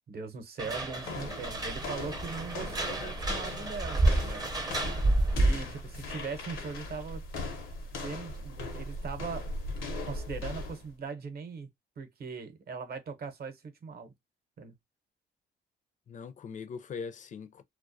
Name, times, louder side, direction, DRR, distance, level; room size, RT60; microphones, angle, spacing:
voice 1, 0.1-4.5 5.3-7.2 8.0-9.5 10.0-11.7 12.0-14.1 14.6-14.7, right 5 dB, 50° right, 0.7 m, -40 dB
sound 1, 0.6-5.8, right 2 dB, 20° right, 0.5 m, -29 dB
sound 2, 1.0-10.9, left 2 dB, 85° left, 0.7 m, -39 dB
voice 2, 16.1-17.6, left 6 dB, 40° left, 0.4 m, -41 dB
2.2 x 2.1 x 2.6 m
cardioid pair, 90°, 20 cm